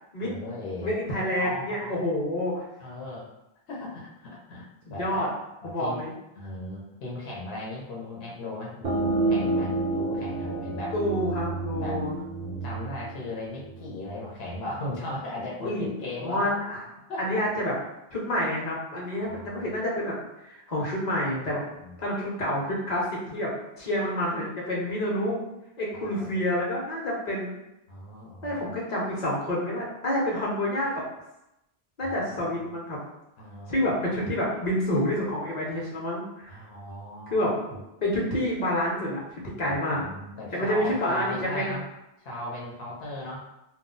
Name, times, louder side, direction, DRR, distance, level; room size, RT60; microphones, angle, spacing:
voice 1, 0.2-0.9 1.4-2.1 2.8-3.3 3.7-5.3 5.6-6.0 6.4-10.9 11.8-12.0 12.4-16.4 17.1-17.4 19.1-19.6 21.8-22.1 25.9-26.5 27.9-28.7 32.0-32.5 33.4-34.3 36.5-37.5 39.6-41.9 42.2-43.5, left 1 dB, 75° left, -4 dB, 0.9 m, -37 dB
voice 2, 0.8-2.7 4.9-5.3 5.6-6.1 10.9-12.1 15.6-16.8 17.2-17.7 18.1-20.2 20.4-21.6 22.0-23.5 23.8-25.4 25.8-27.6 28.4-31.0 32.0-33.0 33.7-36.5 37.3-37.5 38.0-39.2 39.6-40.0 40.5-41.8, left 1 dB, 45° left, -4 dB, 0.8 m, -28 dB
sound 1, 8.8-14.2, right 2 dB, 55° right, 0.5 m, -29 dB
2.3 x 2.0 x 3.7 m, 0.90 s
omnidirectional pair, 1.1 m